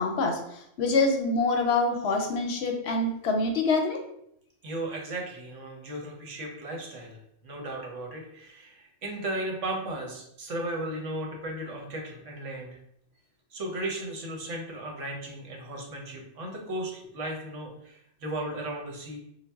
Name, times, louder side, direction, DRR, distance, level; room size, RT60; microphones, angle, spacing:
voice 1, 0.0-4.0, left 3 dB, 65° left, 3 dB, 0.7 m, -26 dB
voice 2, 4.6-12.8 13.5-19.2, right 1 dB, 75° right, 0 dB, 1.2 m, -36 dB
4.0 x 2.1 x 3.4 m, 0.74 s
omnidirectional pair, 1.3 m